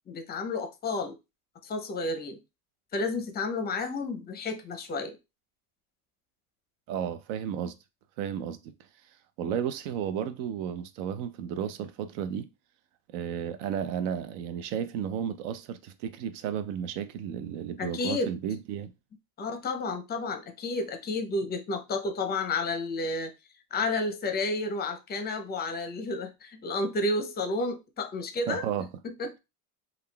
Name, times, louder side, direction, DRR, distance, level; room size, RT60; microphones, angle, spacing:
voice 1, 0.1-1.2 1.6-2.4 2.9-5.2 17.8-18.3 19.4-23.3 23.7-28.7 29.0-29.4, left 2 dB, 20° left, 0.5 m, -31 dB
voice 2, 6.9-7.8 8.2-8.7 9.4-12.5 13.1-18.9 28.5-28.9, right 8 dB, 65° right, 0.6 m, -33 dB
3.5 x 2.3 x 2.2 m
supercardioid pair, 105°, 44 cm